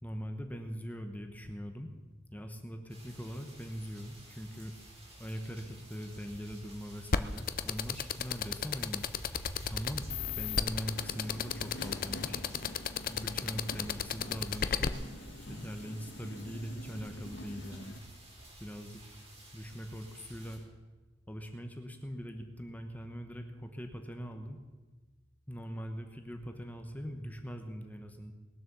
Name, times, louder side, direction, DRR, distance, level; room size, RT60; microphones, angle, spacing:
voice 1, 0.0-1.9 2.3-4.7 5.2-9.1 9.7-10.1 10.4-12.4 13.1-14.9 15.5-18.0 18.6-19.0 19.5-20.6 21.3-24.6 25.5-28.3, equal, 10° left, 5 dB, 1.0 m, -41 dB
sound 1, 2.9-20.6, equal, 35° right, 5.0 m, -50 dB
sound 2, 7.1-14.9, left 7 dB, 50° left, 0.6 m, -31 dB
Subway metro underground, 10.1-18.0, left 1 dB, 70° left, 1.4 m, -47 dB
20.5 x 7.6 x 6.9 m, 1.3 s
head